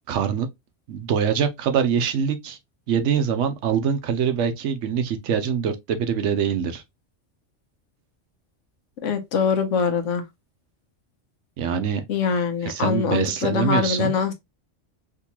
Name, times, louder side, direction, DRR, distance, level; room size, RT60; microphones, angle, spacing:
voice 1, 0.1-0.5 0.9-2.6 2.9-6.8 11.6-12.0 12.7-14.2, right 7 dB, 80° right, 1.0 m, -24 dB
voice 2, 9.0-10.2 12.1-14.3, left 6 dB, 80° left, 1.1 m, -23 dB
3.7 x 2.6 x 2.8 m
omnidirectional pair, 1.3 m